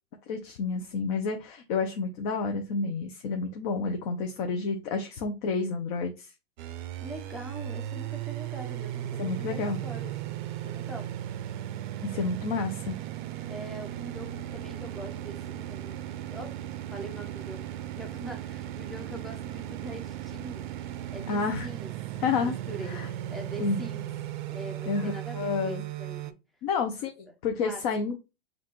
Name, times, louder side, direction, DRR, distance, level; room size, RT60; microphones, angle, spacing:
voice 1, 0.3-6.3 9.2-9.8 12.0-13.0 21.3-21.7 22.2-22.5 22.9-23.1 23.6-23.9 24.9-25.8 26.6-28.2, left 4 dB, 40° left, 0.7 m, -30 dB
sound 1, 6.6-26.3, right 12 dB, 50° right, 0.5 m, -37 dB
voice 2, 7.0-11.1 13.5-16.0 16.3-16.5 16.9-20.7 21.1-21.9 22.4-24.1 24.5-26.4 27.6-27.8, right 2 dB, ahead, 0.6 m, -43 dB
5.5 x 2.6 x 3.0 m
hypercardioid pair, 145°, 31 cm